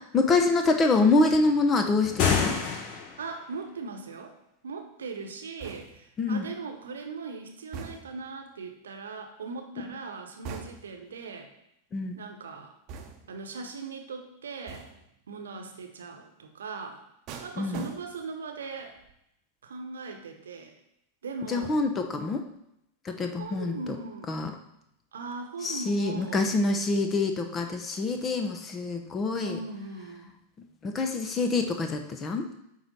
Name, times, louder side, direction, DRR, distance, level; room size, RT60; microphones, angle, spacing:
voice 1, 0.1-2.6 6.2-6.5 11.9-12.2 17.6-17.9 21.5-22.4 23.0-24.0 24.3-24.5 25.6-29.6 30.8-32.5, left 3 dB, 25° left, 5 dB, 0.9 m, -26 dB
sound 1, 2.0-3.3, left 7 dB, 45° left, 1.2 m, -27 dB
voice 2, 3.2-4.3 4.6-11.5 12.1-12.7 13.3-14.9 15.3-17.0 17.4-19.0 19.6-20.7 21.2-21.8 23.4-24.3 25.1-26.5 29.4-30.3, right 4 dB, 65° right, 4 dB, 1.0 m, -39 dB
sound 2, 5.6-6.2 7.7-8.3 10.4-11.1 12.9-13.4 14.7-15.1 17.3-18.4 18.8-19.1, right 6 dB, 40° right, 0.9 m, -42 dB
9.0 x 3.3 x 5.4 m, 0.80 s
figure-of-eight pair, 90°, 0 cm